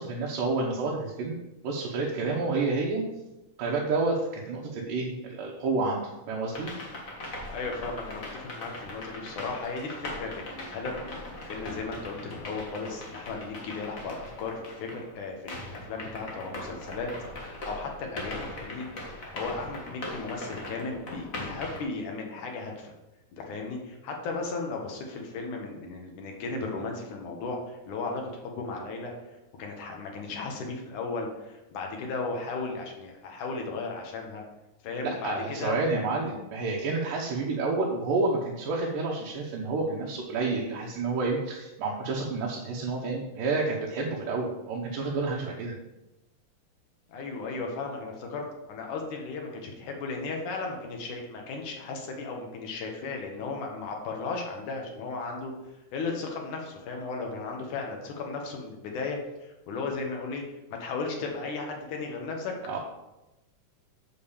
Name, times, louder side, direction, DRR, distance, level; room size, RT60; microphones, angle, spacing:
voice 1, 0.0-1.4 1.6-3.0 3.6-6.7 35.0-45.7 62.7-62.8, right 3 dB, 85° right, -2 dB, 2.8 m, -29 dB
sound 1, 6.5-15.1 15.5-21.8, left 2 dB, 35° left, 1.4 m, -40 dB
voice 2, 7.5-17.1 17.4-22.9 23.4-29.1 29.6-34.4 34.8-35.8 47.1-55.5 55.9-62.5, left 3 dB, 70° left, 1 dB, 2.9 m, -35 dB
7.7 x 5.1 x 7.1 m, 0.98 s
omnidirectional pair, 3.7 m